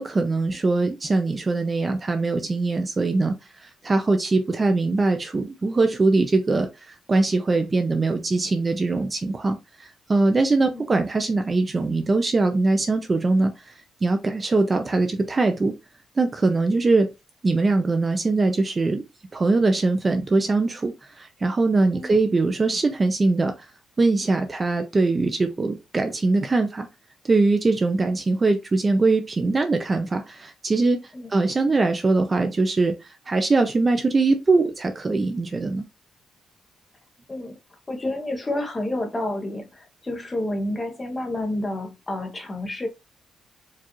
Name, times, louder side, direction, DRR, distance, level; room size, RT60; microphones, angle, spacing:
voice 1, 0.0-3.4 3.6-13.7 14.0-15.7 16.2-17.1 17.4-19.0 19.3-23.5 24.0-26.9 27.2-31.0 31.3-35.8, right 3 dB, 20° right, 0.4 m, -22 dB
voice 2, 37.9-42.9, left 1 dB, 15° left, 0.7 m, -29 dB
4.6 x 2.4 x 2.9 m
cardioid pair, 165°, 0 cm